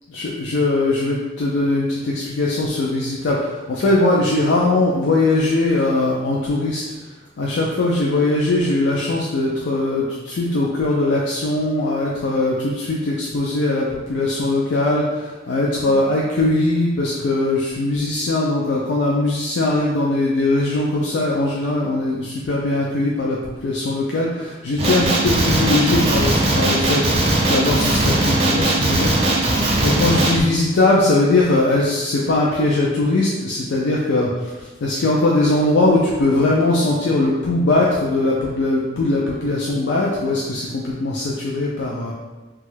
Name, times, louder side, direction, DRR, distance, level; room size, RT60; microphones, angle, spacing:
voice 1, 0.1-7.1 7.4-27.0 27.4-42.1, left 2 dB, 75° left, -4 dB, 0.4 m, -20 dB
Male speech man speaking, 24.8-30.4, right 1 dB, 35° right, 0.4 m, -19 dB
3.0 x 2.3 x 3.1 m, 1.2 s
head